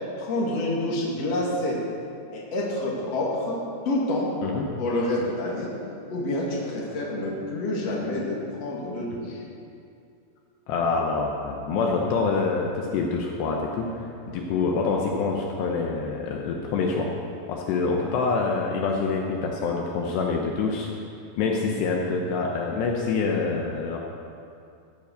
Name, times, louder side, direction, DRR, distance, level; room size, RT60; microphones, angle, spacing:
voice 1, 0.2-1.8 2.3-3.6 3.8-4.3 4.8-5.7 6.1-9.4, left 1 dB, 40° left, -4 dB, 2.9 m, -28 dB
voice 2, 10.7-17.1 17.5-20.9 21.4-24.0, left 4 dB, 75° left, 0 dB, 3.0 m, -26 dB
15.5 x 8.1 x 6.7 m, 2.5 s
omnidirectional pair, 5.1 m